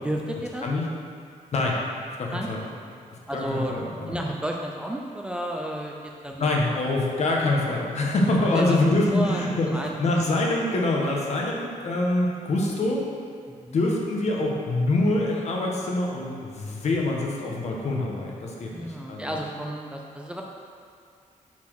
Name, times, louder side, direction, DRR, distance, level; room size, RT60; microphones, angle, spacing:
voice 1, 0.0-0.6 2.3-2.5 2.9-3.0 3.3-3.7 4.1-5.9 6.2-6.8 8.5-8.8 9.1-10.0 13.5-13.8 18.7-20.4, right 1 dB, 5° right, 0 dB, 0.5 m, -32 dB
voice 2, 2.2-2.6 3.3-4.2 6.4-13.0 13.7-19.3, left 2 dB, 55° left, -1 dB, 1.2 m, -25 dB
8.4 x 4.2 x 6.4 m, 2.3 s
wide cardioid pair, 180°, 14 cm